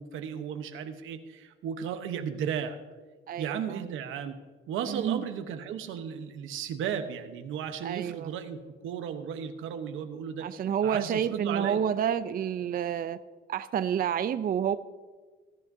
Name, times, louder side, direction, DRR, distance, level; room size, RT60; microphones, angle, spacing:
voice 1, 0.0-2.8 3.4-4.4 4.7-10.5 10.8-11.8, right 8 dB, 90° right, 8 dB, 1.0 m, -35 dB
voice 2, 3.3-4.0 4.9-5.2 7.8-8.3 10.4-13.2 13.5-14.8, right 8 dB, 45° right, 12 dB, 0.5 m, -29 dB
20.0 x 10.5 x 2.7 m, 1.4 s
cardioid pair, 90°, 20 cm